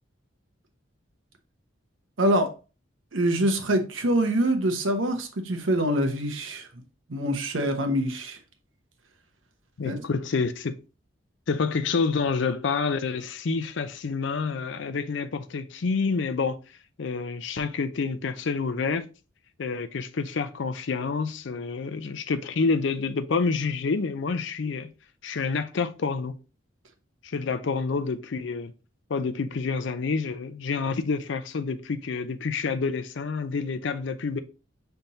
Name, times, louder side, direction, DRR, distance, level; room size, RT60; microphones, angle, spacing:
voice 1, 2.2-2.5 3.1-6.7 7.1-8.4 9.8-9.9, right 1 dB, 80° right, 0.9 m, -25 dB
voice 2, 9.8-10.8 11.5-16.6 17.0-19.1 19.6-24.9 25.2-26.4 27.2-28.7 29.1-34.4, left 4 dB, 65° left, 0.5 m, -28 dB
5.5 x 3.4 x 2.8 m
head